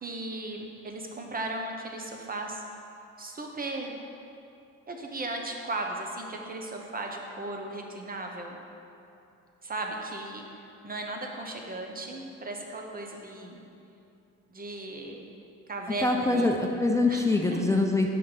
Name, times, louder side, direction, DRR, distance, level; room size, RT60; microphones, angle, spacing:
voice 1, 0.0-2.6 3.2-3.9 4.9-8.6 9.6-13.6 14.5-15.3 15.7-16.6 17.1-17.7, right 2 dB, 30° right, 2 dB, 1.1 m, -36 dB
voice 2, 16.0-18.1, left 2 dB, 10° left, 1 dB, 0.6 m, -24 dB
7.8 x 5.5 x 5.1 m, 2.8 s
cardioid pair, 90°, 30 cm